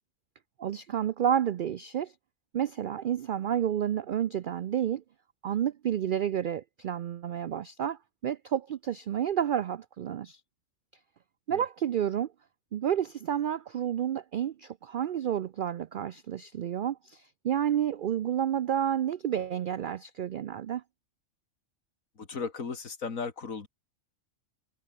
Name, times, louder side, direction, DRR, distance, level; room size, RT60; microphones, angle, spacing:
voice 1, 0.6-2.1 2.5-5.0 5.4-10.4 11.5-12.3 12.7-20.8, right 9 dB, 75° right, 0.4 m, -30 dB
voice 2, 22.2-23.7, left 5 dB, 80° left, 2.6 m, -36 dB
omnidirectional pair, 1.4 m